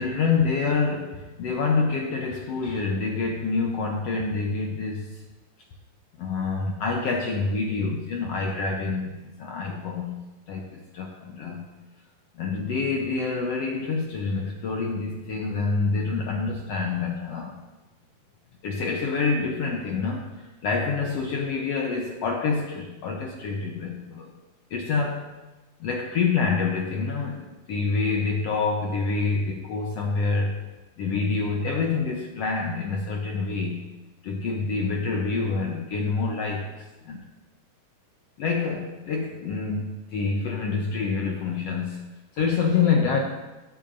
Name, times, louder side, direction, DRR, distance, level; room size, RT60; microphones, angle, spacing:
voice 1, 0.0-5.2 6.2-11.7 12.4-17.6 18.6-24.3 24.7-25.3 25.8-30.6 31.0-33.8 34.2-37.2 38.4-42.0 42.3-43.2, left 4 dB, 80° left, 1 dB, 1.4 m, -27 dB
18.5 x 8.8 x 2.6 m, 1.1 s
omnidirectional pair, 3.8 m